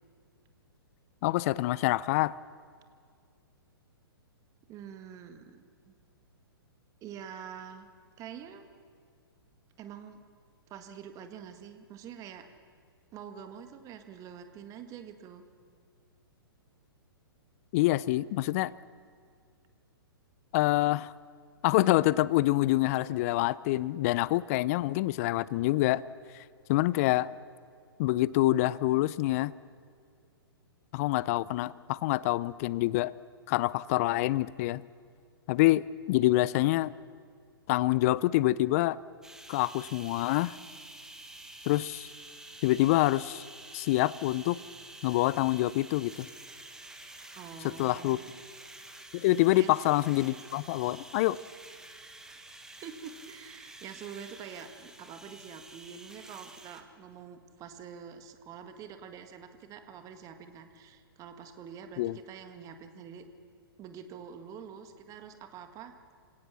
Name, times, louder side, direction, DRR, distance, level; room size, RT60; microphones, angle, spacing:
voice 1, 1.2-2.3 17.7-18.7 20.5-21.1 21.6-26.0 26.3-26.4 26.7-27.3 28.0-29.5 30.9-33.1 33.5-34.8 35.5-36.9 37.7-39.0 39.5-40.6 41.7-42.1 42.6-43.4 43.7-44.6 45.0-46.3 47.6-48.2 49.1-51.4 62.0-62.2, left 17 dB, 40° left, 21 dB, 0.5 m, -26 dB
voice 2, 4.7-5.9 7.0-7.9 8.2-8.7 9.8-10.2 10.7-12.5 13.1-15.4 47.3-48.3 49.5-49.8 52.2-52.4 52.8-63.3 63.8-65.9, right 7 dB, 25° right, 8 dB, 1.7 m, -46 dB
sound 1, 39.2-56.8, right 2 dB, 5° right, 1.4 m, -49 dB
27.5 x 17.5 x 7.0 m, 2.1 s
figure-of-eight pair, 120°, 13 cm